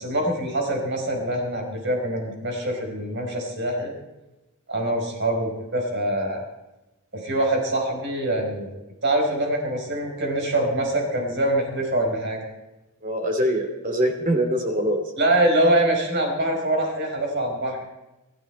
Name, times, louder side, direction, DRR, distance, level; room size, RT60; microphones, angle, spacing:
voice 1, 0.0-3.9 4.7-6.4 7.1-12.4 15.2-17.8, right 1 dB, 55° right, 1 dB, 4.8 m, -24 dB
voice 2, 13.0-15.0, equal, 35° right, 4 dB, 3.0 m, -23 dB
21.5 x 14.5 x 4.4 m, 1.0 s
head